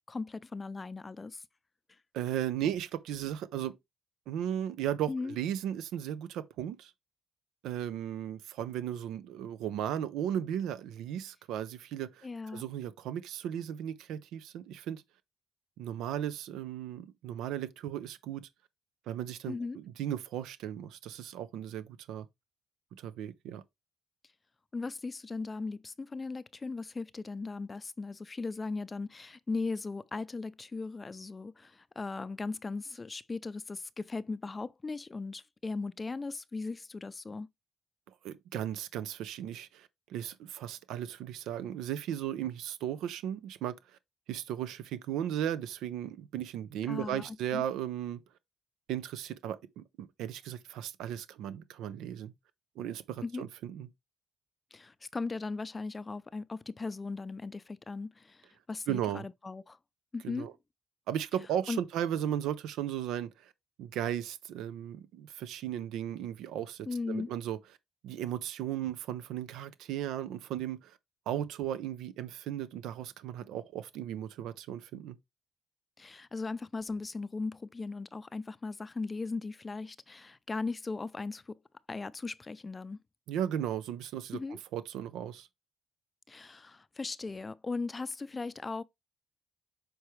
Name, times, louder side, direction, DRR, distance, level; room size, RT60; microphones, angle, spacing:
voice 1, 0.1-1.4 5.1-5.4 12.2-12.6 19.5-19.8 24.7-37.5 46.9-47.6 53.2-53.5 54.7-59.8 60.1-60.5 61.7-61.8 66.9-67.3 76.0-81.5 81.9-83.0 84.3-84.6 86.3-88.8, left 3 dB, 25° left, 0.4 m, -38 dB
voice 2, 2.1-3.8 4.3-6.9 7.6-12.3 12.5-15.0 15.8-18.5 19.1-22.3 22.9-23.6 38.2-43.8 44.3-48.2 48.9-52.3 52.8-53.9 58.9-59.3 60.2-60.5 61.1-63.5 63.8-67.6 68.0-71.0 71.3-75.2 83.3-84.4 84.7-85.5, right 10 dB, 90° right, 0.6 m, -36 dB
8.0 x 4.7 x 3.2 m
cardioid pair, 90°, 0 cm